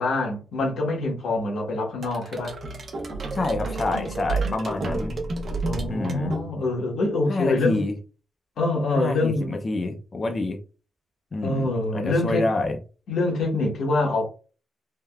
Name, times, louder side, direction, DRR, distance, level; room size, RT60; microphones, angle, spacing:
voice 1, 0.0-2.6 5.6-7.8 8.6-9.5 11.4-12.4 13.1-14.3, left 2 dB, 70° left, 1.1 m, -25 dB
sound 1, 2.0-6.9, right 3 dB, 45° right, 0.7 m, -30 dB
voice 2, 3.3-5.2 5.9-6.4 7.3-8.0 8.9-10.6 11.3-12.8, left 2 dB, 30° left, 0.4 m, -27 dB
3.3 x 2.1 x 2.3 m
wide cardioid pair, 145°, 0 cm